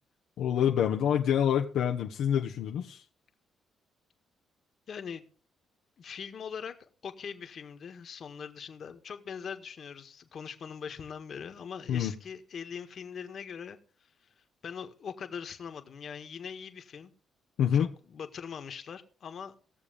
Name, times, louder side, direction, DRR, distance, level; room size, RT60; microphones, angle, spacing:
voice 1, 0.4-3.0 11.9-12.1 17.6-17.9, left 9 dB, 80° left, 1.0 m, -26 dB
voice 2, 4.9-5.2 6.0-17.1 17.7-19.5, left 7 dB, 55° left, 1.7 m, -42 dB
17.0 x 7.0 x 5.2 m
cardioid pair, 90°, 0 cm